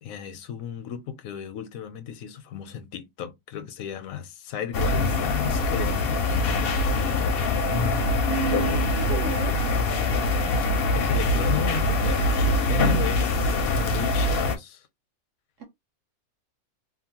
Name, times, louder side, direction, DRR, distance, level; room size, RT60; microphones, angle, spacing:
voice 1, 0.0-7.5 10.9-13.5 13.9-14.9, left 9 dB, 85° left, 1.0 m, -35 dB
sound 1, 4.7-14.6, left 2 dB, 60° left, 0.7 m, -23 dB
voice 2, 8.2-9.5 15.6-15.7, right 8 dB, 65° right, 1.3 m, -31 dB
2.9 x 2.1 x 2.8 m
omnidirectional pair, 1.4 m